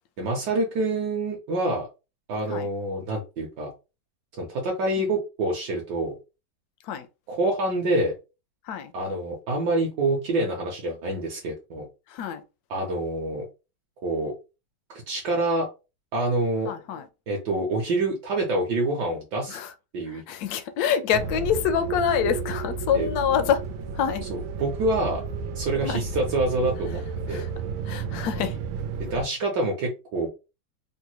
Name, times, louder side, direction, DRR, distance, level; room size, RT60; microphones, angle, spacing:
voice 1, 0.2-1.9 2.3-3.7 4.4-6.1 7.3-8.1 8.9-11.9 12.7-13.4 14.0-14.3 15.1-15.7 16.1-16.7 17.3-19.6 19.9-20.2 22.9-23.1 24.3-25.2 25.5-27.0 27.3-27.5 29.1-30.3, right 2 dB, 70° right, 1.3 m, -26 dB
voice 2, 12.1-12.4 16.7-17.1 19.5-19.7 20.1-23.6 23.9-24.2 25.8-26.0 27.3-27.5 27.9-28.6, left 8 dB, 80° left, 0.8 m, -26 dB
sound 1, 21.1-29.2, right 5 dB, 90° right, 1.4 m, -32 dB
3.7 x 2.0 x 2.9 m
omnidirectional pair, 2.1 m